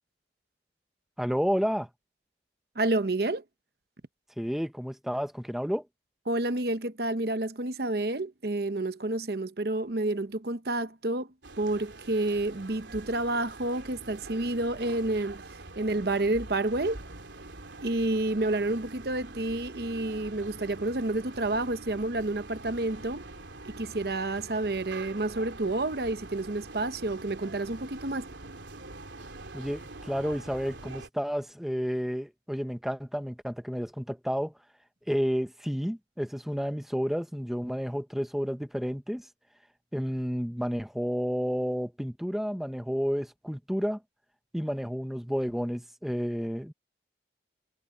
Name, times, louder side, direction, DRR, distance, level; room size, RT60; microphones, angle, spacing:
voice 1, 1.2-1.9 4.4-5.9 29.5-34.5 35.1-39.3 39.9-44.0 44.5-46.7, equal, ahead, 0.9 m, -31 dB
voice 2, 2.8-3.4 6.3-11.3 11.6-17.0 17.8-23.3 23.6-28.2, right 2 dB, 55° right, 0.9 m, -29 dB
sound 1, 11.4-31.1, right 2 dB, 85° right, 3.4 m, -45 dB
head